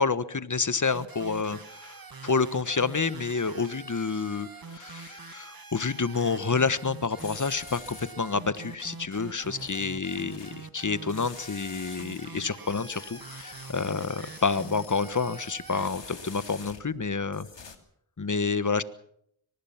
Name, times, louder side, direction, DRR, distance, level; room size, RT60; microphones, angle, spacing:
voice 1, 0.0-17.5 18.2-18.8, left 4 dB, 40° left, 14 dB, 1.3 m, -29 dB
sound 1, 0.8-15.9, right 4 dB, 45° right, 1.9 m, -45 dB
sound 2, 7.2-8.3 9.5-10.5 11.1-12.2 12.6-17.0 17.3-17.8, left 5 dB, 65° left, 2.6 m, -47 dB
23.5 x 19.5 x 5.9 m, 0.70 s
cardioid pair, 45°, 48 cm